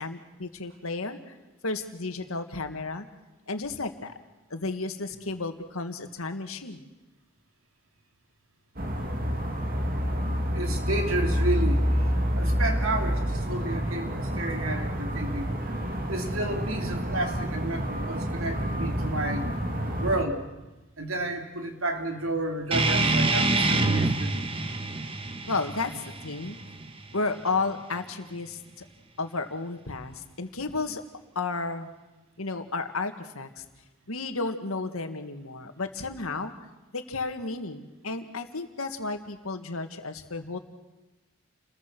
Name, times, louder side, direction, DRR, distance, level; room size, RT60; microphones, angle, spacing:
voice 1, 0.0-1.4 1.6-3.1 3.5-4.1 4.5-6.9 25.5-26.6 27.1-28.8 29.2-31.0 31.4-31.9 32.4-33.6 34.1-36.5 36.9-40.6, left 3 dB, 90° left, 7 dB, 2.0 m, -32 dB
sound 1, 8.8-20.3, equal, 40° right, 2.5 m, -28 dB
voice 2, 10.5-11.9 12.2-15.8 16.1-19.5 20.0-20.4 21.0-24.4, right 2 dB, 80° right, 4 dB, 3.2 m, -31 dB
sound 2, 22.7-27.8, right 2 dB, 25° right, 1.3 m, -26 dB
29.5 x 21.5 x 6.2 m, 1.1 s
head